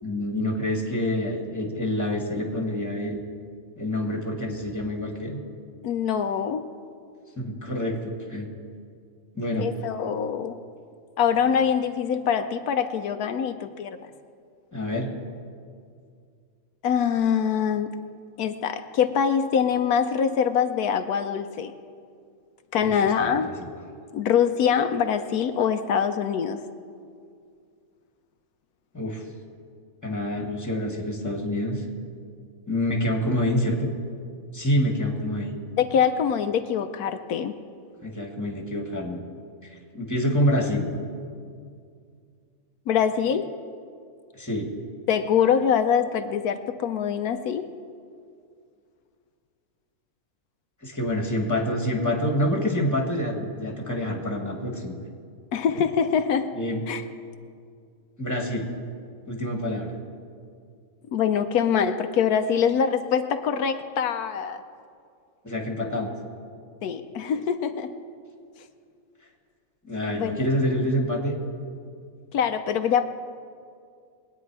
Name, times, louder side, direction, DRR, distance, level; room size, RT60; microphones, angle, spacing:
voice 1, 0.0-3.2 3.8-5.4 7.3-8.5 9.3-9.7 14.7-15.1 22.8-23.7 28.9-29.3 30.0-31.8 32.7-33.9 34.5-35.6 38.0-39.2 39.7-40.9 44.3-44.7 50.8-55.0 56.5-56.8 58.2-58.7 59.3-59.9 65.4-66.1 69.8-71.4, left 1 dB, 10° left, 2 dB, 1.7 m, -27 dB
voice 2, 5.8-6.6 9.6-10.6 11.2-14.0 16.8-17.9 18.4-21.7 22.7-23.5 24.1-26.6 35.8-37.5 42.9-43.5 45.1-47.7 55.5-56.5 56.9-57.0 61.1-64.6 66.8-67.9 70.1-70.5 72.3-73.1, left 7 dB, 85° left, 8 dB, 1.2 m, -24 dB
22.0 x 9.1 x 4.7 m, 2.3 s
omnidirectional pair, 1.6 m